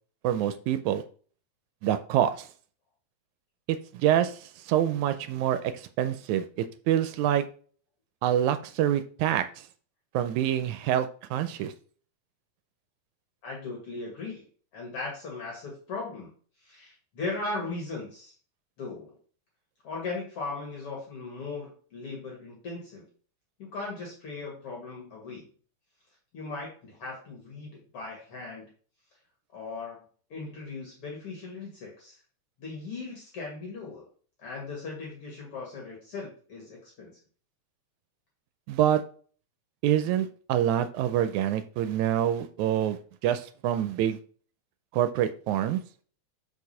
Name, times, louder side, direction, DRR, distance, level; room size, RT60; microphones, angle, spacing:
voice 1, 0.2-1.0 1.8-2.5 3.7-7.5 8.2-9.4 10.1-11.7 38.7-39.0 39.8-44.2 44.9-45.8, right 11 dB, 85° right, 11 dB, 2.0 m, -26 dB
voice 2, 13.4-14.5 14.7-16.3 16.6-18.3 18.8-19.2 19.8-23.1 23.6-25.4 26.3-28.7 29.5-30.0 30.3-32.2 32.6-34.1 34.4-37.2, left 3 dB, 55° left, -2 dB, 2.3 m, -38 dB
4.7 x 4.7 x 5.5 m, 0.43 s
omnidirectional pair, 3.4 m